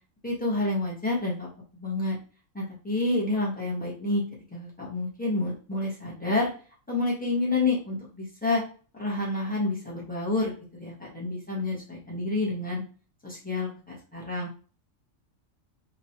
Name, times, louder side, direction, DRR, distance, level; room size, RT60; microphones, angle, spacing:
voice 1, 0.2-2.2 2.5-4.2 4.5-6.5 6.9-8.6 9.0-12.8 13.2-14.5, left 2 dB, 5° left, -5 dB, 1.1 m, -29 dB
3.1 x 2.8 x 2.8 m, 0.38 s
omnidirectional pair, 1.3 m